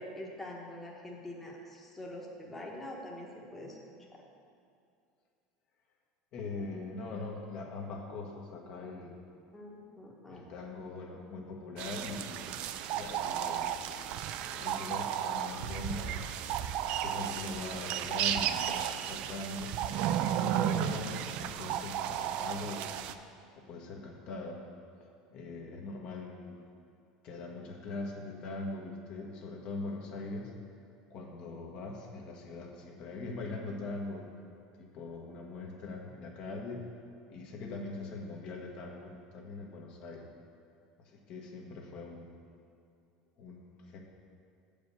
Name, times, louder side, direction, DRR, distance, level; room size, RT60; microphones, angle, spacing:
voice 1, 0.0-3.8 4.1-4.2 9.5-10.5, left 1 dB, 10° left, -3 dB, 1.2 m, -44 dB
voice 2, 6.3-9.2 10.3-12.4 12.9-13.7 14.4-16.2 17.0-19.8 20.1-22.9 23.6-24.6 25.3-26.6 27.2-30.5 31.1-34.3 34.8-36.8 37.3-40.3 41.0-42.3 43.4-44.0, left 3 dB, 50° left, 0 dB, 1.3 m, -41 dB
sound 1, 11.8-23.1, right 10 dB, 55° right, 0.4 m, -34 dB
7.9 x 5.1 x 7.0 m, 2.5 s
supercardioid pair, 125°, 2 cm